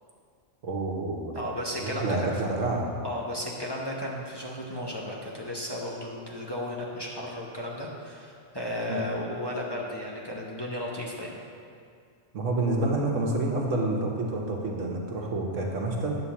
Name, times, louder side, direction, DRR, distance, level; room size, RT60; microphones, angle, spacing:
voice 1, 0.6-1.3 1.8-2.9 8.9-9.0 12.3-16.2, right 2 dB, 85° right, 0 dB, 1.4 m, -28 dB
voice 2, 1.3-2.6 3.0-11.4, left 1 dB, 25° left, -4 dB, 0.8 m, -34 dB
9.6 x 3.8 x 7.1 m, 2.3 s
omnidirectional pair, 1.3 m